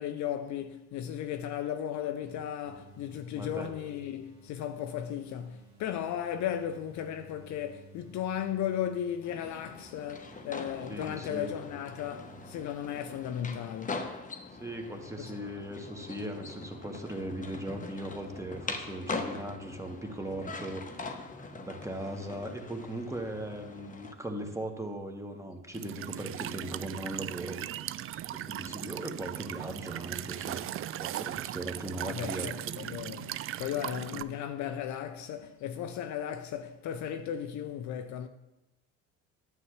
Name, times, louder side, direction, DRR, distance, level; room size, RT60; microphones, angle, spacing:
voice 1, 0.0-14.2 15.2-15.4 32.0-38.3, left 9 dB, 55° left, 0.6 m, -36 dB
sound 1, 2.6-12.6, right 3 dB, 80° right, 2.4 m, -56 dB
voice 2, 3.3-3.7 10.9-11.5 14.5-21.1 21.5-27.6 28.4-30.6 31.0-32.5 34.1-34.2, right 1 dB, 10° right, 1.5 m, -38 dB
sound 2, 9.2-24.1, left 4 dB, 20° left, 1.0 m, -42 dB
Walk footsteps / Chirp tweet / Stream, 25.7-34.2, right 12 dB, 40° right, 0.4 m, -38 dB
9.6 x 7.1 x 3.2 m
hypercardioid pair, 70°, 35 cm